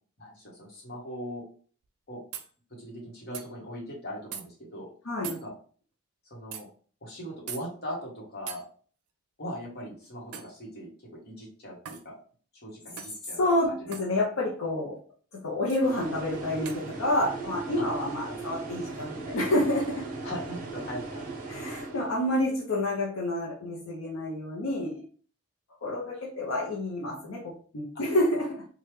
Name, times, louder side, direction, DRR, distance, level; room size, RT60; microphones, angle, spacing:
voice 1, 0.2-1.4 2.1-2.2 2.7-4.9 5.3-5.5 6.2-6.7 7.0-8.6 9.4-12.2 12.6-13.4 13.8-14.2 17.8-17.9 18.2-18.3 20.2-21.3 26.1-26.2 27.9-28.0, equal, 45° left, -3 dB, 1.1 m, -40 dB
sound 1, 1.8-1.9 2.3-2.5 3.3-3.5 4.3-4.4 5.2-5.4 6.5-6.6 7.5-7.6 8.5-8.6 10.3-10.6 11.9-12.1 13.0-13.2 13.9-14.1 15.7-15.9 16.7-16.9, right 8 dB, 80° right, 0.5 m, -40 dB
voice 2, 5.0-5.4 13.4-15.0 15.3-20.1 21.5-25.0 25.8-28.7, left 1 dB, 70° left, -3 dB, 0.7 m, -29 dB
sound 2, 15.8-22.5, right 3 dB, 35° right, 0.7 m, -38 dB
3.1 x 2.3 x 3.2 m, 0.43 s
head